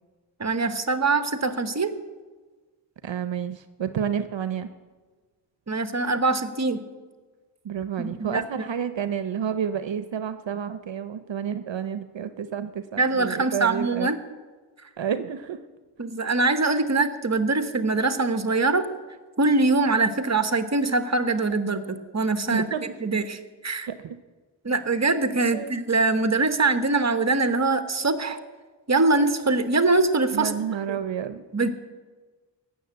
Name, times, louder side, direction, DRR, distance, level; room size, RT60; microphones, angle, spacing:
voice 1, 0.4-1.9 5.7-6.8 8.0-8.7 13.0-14.2 16.0-18.9 19.4-23.9 24.6-28.4 28.9-30.5 30.9-31.0 31.5-31.7, right 3 dB, 35° right, 9 dB, 1.1 m, -23 dB
voice 2, 3.0-4.7 7.6-14.1 15.0-15.6 22.5-22.8 23.9-24.2 25.5-25.8 30.3-31.4, right 8 dB, 75° right, 11 dB, 0.7 m, -30 dB
17.0 x 6.9 x 8.0 m, 1.4 s
wide cardioid pair, 55°, 45 cm